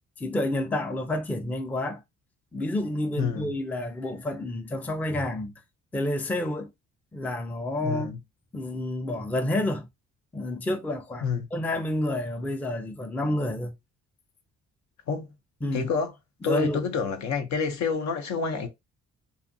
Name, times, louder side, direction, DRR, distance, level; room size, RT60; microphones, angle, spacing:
voice 1, 0.2-2.0 2.5-5.5 5.9-6.7 7.1-8.1 8.5-9.9 10.3-13.7 15.6-15.9 16.4-16.8, left 1 dB, 5° left, 0.4 m, -29 dB
voice 2, 3.2-3.5 7.8-8.2 11.2-11.5 15.1-15.3 15.7-16.1 16.4-18.7, left 5 dB, 65° left, 0.7 m, -28 dB
2.6 x 2.4 x 2.6 m
cardioid pair, 90°, 30 cm